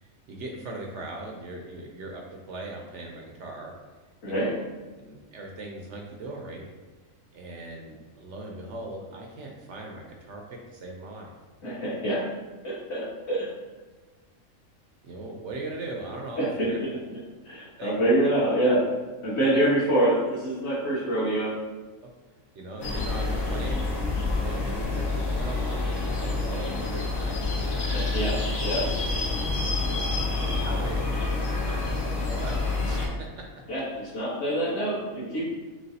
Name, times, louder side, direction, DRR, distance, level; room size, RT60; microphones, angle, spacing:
voice 1, 0.0-3.7 4.3-4.6 5.0-6.7 7.3-11.3 15.0-16.8 17.8-18.0 22.0-22.1 22.6-23.9 24.3-27.6 29.4-29.5 30.4-33.4, right 2 dB, 65° right, 0 dB, 0.9 m, -39 dB
voice 2, 11.6-12.3 12.6-13.5 16.3-17.0 17.4-18.8 19.2-21.5 27.9-28.3 28.6-28.9 33.7-35.5, right 1 dB, 55° left, -10 dB, 1.7 m, -25 dB
sound 1, 22.8-33.1, left 3 dB, 80° left, 1.3 m, -28 dB
6.2 x 2.3 x 2.7 m, 1.3 s
omnidirectional pair, 1.4 m